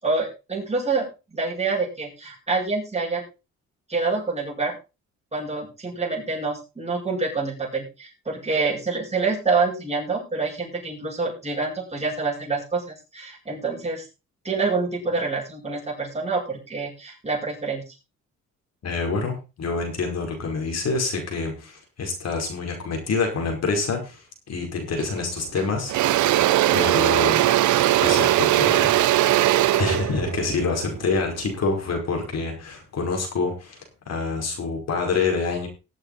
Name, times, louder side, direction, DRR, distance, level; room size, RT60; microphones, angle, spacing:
voice 1, 0.0-3.2 3.9-4.7 5.3-12.8 13.1-14.0 14.4-17.8, right 4 dB, 20° right, -3 dB, 7.8 m, -26 dB
voice 2, 18.8-24.2 24.5-26.4 26.7-27.4 28.0-29.4 29.8-35.7, left 4 dB, 60° left, 2 dB, 5.0 m, -27 dB
Engine / Drill, 25.0-25.2 25.5-31.7, right 14 dB, 75° right, 0.8 m, -20 dB
19.0 x 8.1 x 4.1 m, 0.30 s
cardioid pair, 90°, 30 cm